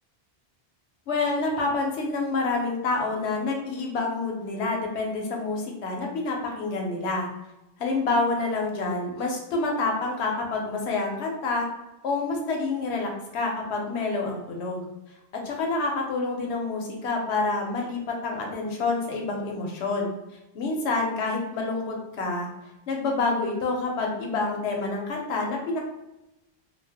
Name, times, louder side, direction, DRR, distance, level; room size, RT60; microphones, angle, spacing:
voice 1, 1.1-7.3 7.8-11.7 12.0-14.9 15.4-20.1 20.5-22.5 22.9-25.8, left 3 dB, 85° left, 1 dB, 0.9 m, -28 dB
2.5 x 2.1 x 3.4 m, 0.94 s
omnidirectional pair, 1.1 m